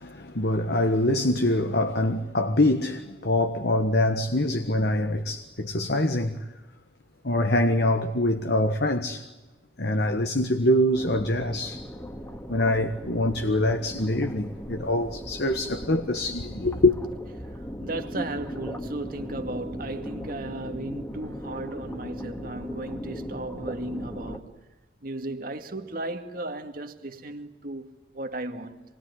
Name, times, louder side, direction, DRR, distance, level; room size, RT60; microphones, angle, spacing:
voice 1, 0.0-6.5 7.2-9.3 9.8-11.9 12.5-17.0, left 1 dB, 65° left, 1.5 m, -24 dB
sound 1, 10.9-24.4, equal, 15° left, 2.2 m, -38 dB
voice 2, 17.4-24.5 25.0-28.8, right 2 dB, 55° right, 2.3 m, -35 dB
27.5 x 22.0 x 9.7 m
head